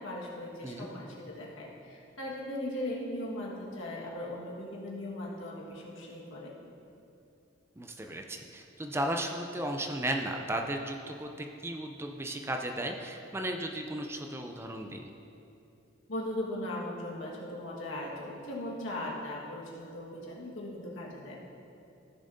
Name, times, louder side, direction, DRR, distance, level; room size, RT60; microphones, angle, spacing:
voice 1, 0.0-6.6 16.1-21.4, left 1 dB, 75° left, -3 dB, 1.7 m, -38 dB
voice 2, 7.8-15.1, right 1 dB, 15° right, 3 dB, 0.4 m, -35 dB
15.0 x 7.0 x 2.7 m, 2.8 s
head